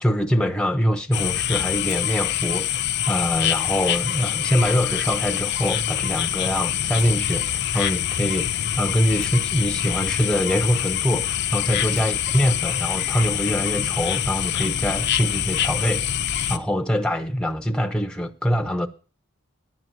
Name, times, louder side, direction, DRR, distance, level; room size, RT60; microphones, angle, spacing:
voice 1, 0.0-16.1 16.5-18.9, equal, 5° left, 0.7 m, -24 dB
sound 1, 1.1-16.6, left 11 dB, 50° left, 0.6 m, -25 dB
10.0 x 9.3 x 7.6 m
head